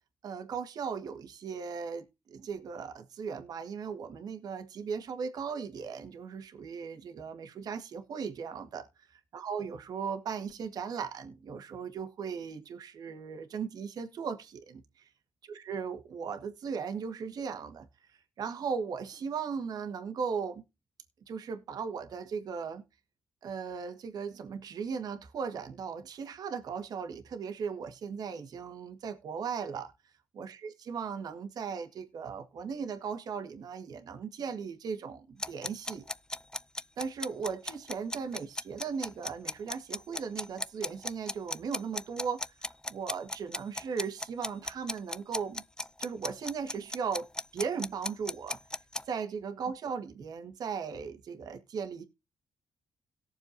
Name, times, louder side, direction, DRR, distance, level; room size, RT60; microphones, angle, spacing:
voice 1, 0.2-2.1 2.3-15.1 15.4-17.9 18.4-20.6 21.3-22.8 23.4-29.9 30.3-36.0 37.0-42.4 42.9-45.6 46.0-48.6 49.1-52.0, right 6 dB, 70° right, 1.8 m, -37 dB
sound 1, 35.4-49.0, left 1 dB, 10° left, 0.5 m, -36 dB
18.0 x 7.1 x 2.8 m
cardioid pair, 65°, 7 cm